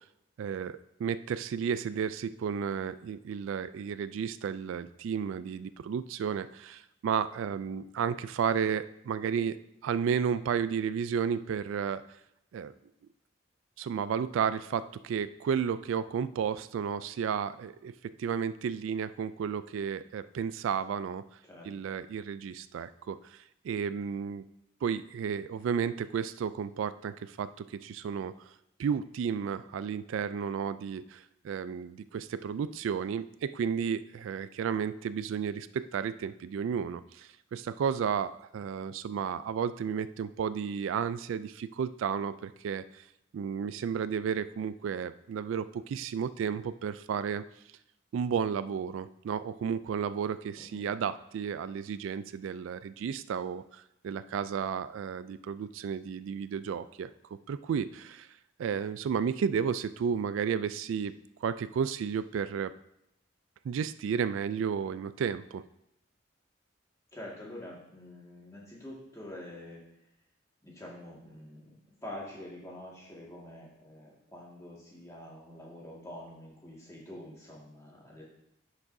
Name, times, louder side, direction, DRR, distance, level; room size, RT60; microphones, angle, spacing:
voice 1, 0.4-12.0 12.5-12.7 13.8-17.9 18.2-21.2 21.6-24.4 24.8-28.3 28.8-43.0 43.3-47.4 48.1-57.1 57.5-58.3 58.6-61.1 61.4-62.7 63.6-65.6, right 7 dB, 80° right, 15 dB, 0.3 m, -32 dB
voice 2, 67.1-69.8 70.6-78.2, left 1 dB, 15° left, -4 dB, 1.8 m, -46 dB
10.5 x 6.1 x 2.7 m, 0.80 s
head